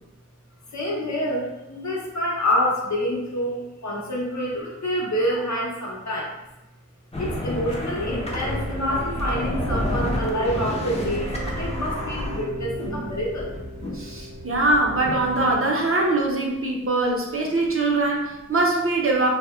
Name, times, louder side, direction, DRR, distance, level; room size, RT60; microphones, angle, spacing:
voice 1, 0.7-1.4 1.7-6.3 7.2-13.5, equal, 65° left, -3 dB, 0.7 m, -27 dB
sound 1, 7.1-15.5, left 1 dB, 20° left, 0.4 m, -30 dB
sound 2, 8.5-16.1, right 1 dB, 60° right, 0.9 m, -37 dB
voice 2, 13.9-19.3, right 2 dB, 45° right, -1 dB, 0.5 m, -22 dB
2.7 x 2.0 x 2.2 m, 0.96 s
wide cardioid pair, 55°, 31 cm